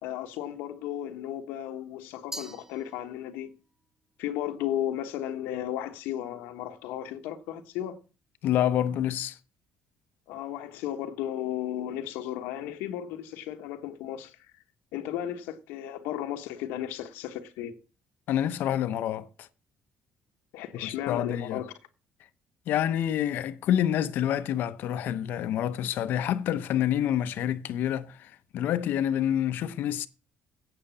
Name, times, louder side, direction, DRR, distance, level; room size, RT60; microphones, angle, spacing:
voice 1, 0.0-3.5 4.2-8.0 10.3-14.5 14.9-17.8 20.5-21.7, left 11 dB, 90° left, 1.2 m, -34 dB
Glass, 2.3-3.5, right 1 dB, 10° right, 0.8 m, -43 dB
voice 2, 8.4-9.4 18.3-19.5 20.8-21.6 22.7-30.1, left 10 dB, 70° left, 0.8 m, -27 dB
8.8 x 6.6 x 7.0 m
cardioid pair, 100°, 3 cm